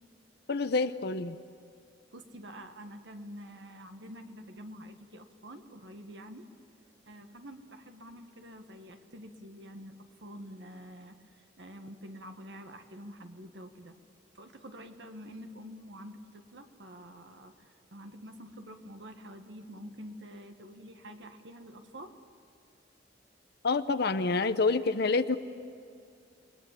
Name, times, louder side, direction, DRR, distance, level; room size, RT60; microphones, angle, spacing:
voice 1, 0.5-1.4 23.6-25.4, left 3 dB, 60° left, 10 dB, 0.8 m, -27 dB
voice 2, 2.1-6.5 7.1-13.9 14.3-22.1, equal, 70° right, 6 dB, 1.7 m, -47 dB
29.0 x 21.0 x 8.5 m, 2.4 s
head